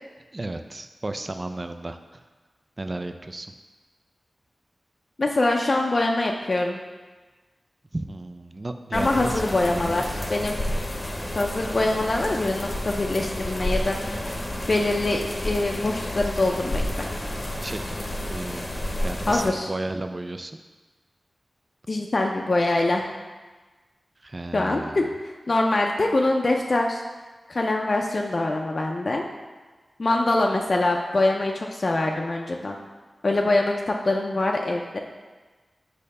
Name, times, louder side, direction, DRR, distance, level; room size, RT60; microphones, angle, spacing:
voice 1, 0.3-2.2 2.8-3.5 7.9-10.0 17.6-17.8 18.3-18.7 19.0-20.6 24.2-25.1, right 2 dB, 40° right, 7 dB, 0.4 m, -33 dB
voice 2, 5.2-6.8 8.9-10.0 10.3-10.6 11.4-14.2 14.7-17.1 19.3-19.7 21.9-23.1 24.5-27.0 27.5-29.3 30.0-32.8 33.2-35.0, left 2 dB, 55° left, 1 dB, 0.4 m, -24 dB
sound 1, 8.9-19.5, left 1 dB, 35° left, 0.8 m, -30 dB
6.5 x 2.8 x 5.3 m, 1.3 s
cardioid pair, 55°, 0 cm